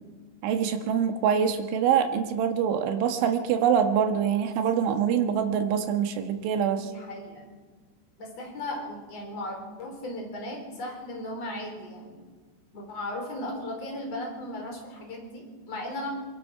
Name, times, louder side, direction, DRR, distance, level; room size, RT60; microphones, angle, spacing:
voice 1, 0.4-6.9, right 8 dB, 85° right, 6 dB, 3.9 m, -25 dB
voice 2, 6.7-7.5 8.2-12.2 12.7-16.1, left 1 dB, 35° left, 2 dB, 4.8 m, -36 dB
23.0 x 20.5 x 5.9 m, 1.4 s
omnidirectional pair, 5.3 m